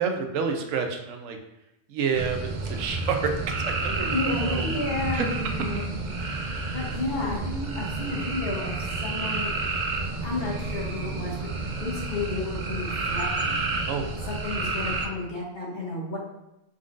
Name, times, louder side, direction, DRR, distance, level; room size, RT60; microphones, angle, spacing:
voice 1, 0.0-1.4 1.9-4.1 4.4-4.7 5.1-5.3 13.8-14.3, right 6 dB, 90° right, 5 dB, 1.0 m, -29 dB
sound 1, 2.1-15.1, right 3 dB, 55° right, 0.5 m, -30 dB
voice 2, 4.1-5.9 6.2-9.5 10.2-11.5 11.8-13.6 14.3-16.2, left 2 dB, 50° left, -4 dB, 1.1 m, -32 dB
4.3 x 3.8 x 2.5 m, 0.91 s
omnidirectional pair, 1.3 m